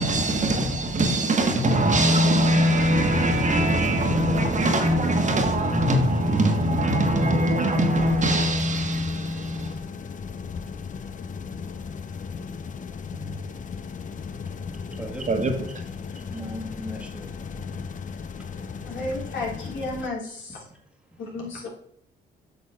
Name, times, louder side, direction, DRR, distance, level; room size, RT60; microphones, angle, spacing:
voice 1, 0.0-9.9 13.1-13.4 15.3-15.8, right 1 dB, 40° right, 1.5 m, -22 dB
sound 1, 1.4-20.1, left 5 dB, 40° left, 0.6 m, -37 dB
voice 2, 14.2-15.4 16.0-19.0 20.6-20.8 21.1-21.6, equal, 5° right, 1.6 m, -42 dB
voice 3, 18.8-20.6 21.2-21.7, left 2 dB, 75° left, 3.4 m, -32 dB
8.7 x 6.1 x 3.5 m
cardioid pair, 90°, 20 cm